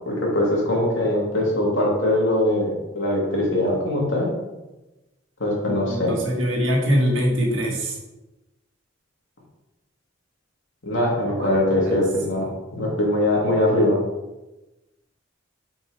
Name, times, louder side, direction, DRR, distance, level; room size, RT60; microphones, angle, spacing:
voice 1, 0.1-2.7 2.9-4.3 5.4-6.1 10.8-12.5 12.7-14.0, left 1 dB, 85° left, -3 dB, 2.2 m, -21 dB
voice 2, 5.7-8.0 11.4-11.5 12.3-12.5, equal, 80° right, -2 dB, 1.8 m, -23 dB
5.5 x 4.5 x 4.8 m, 1.0 s
head